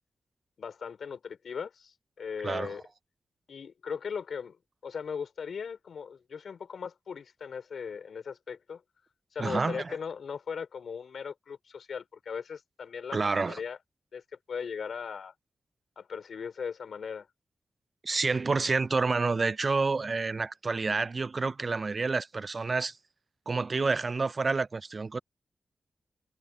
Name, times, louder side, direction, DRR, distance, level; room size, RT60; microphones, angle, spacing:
voice 1, 0.6-2.8 3.5-4.6 4.8-8.8 9.3-13.8 14.1-14.2 14.5-15.3 15.9-17.3, left 6 dB, 80° left, 3.4 m, -38 dB
voice 2, 2.4-2.8 9.4-10.0 13.1-13.6 18.0-22.9 23.5-25.2, right 4 dB, 45° right, 0.3 m, -29 dB
wide cardioid pair, 80°, 0 cm